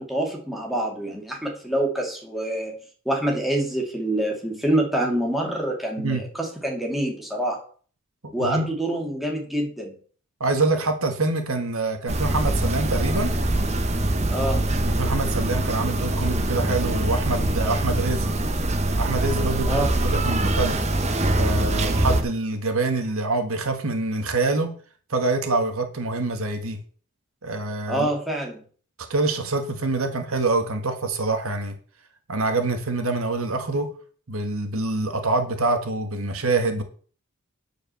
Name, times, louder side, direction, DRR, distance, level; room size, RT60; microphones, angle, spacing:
voice 1, 0.0-2.7 3.1-7.6 8.3-9.9 14.3-14.6 19.7-19.9 27.9-28.6, right 1 dB, ahead, -1 dB, 2.3 m, -26 dB
voice 2, 8.2-8.7 10.4-13.3 14.9-18.3 19.0-20.8 21.4-24.7 25.1-26.8 27.4-28.1 29.1-31.7 32.3-33.9 34.3-36.8, right 3 dB, 65° right, 6 dB, 1.5 m, -25 dB
sound 1, 12.1-22.2, right 1 dB, 30° right, 1.0 m, -23 dB
10.0 x 5.0 x 6.8 m, 0.43 s
head